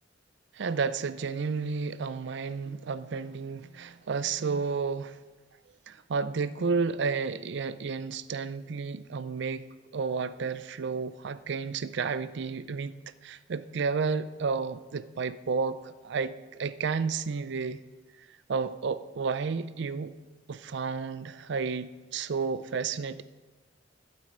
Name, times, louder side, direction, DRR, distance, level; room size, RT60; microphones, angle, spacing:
voice 1, 0.5-5.2 5.9-9.7 9.9-12.9 13.2-17.8 18.5-20.1 20.5-23.2, right 5 dB, 65° right, 0.4 m, -31 dB
11.5 x 7.5 x 5.1 m
head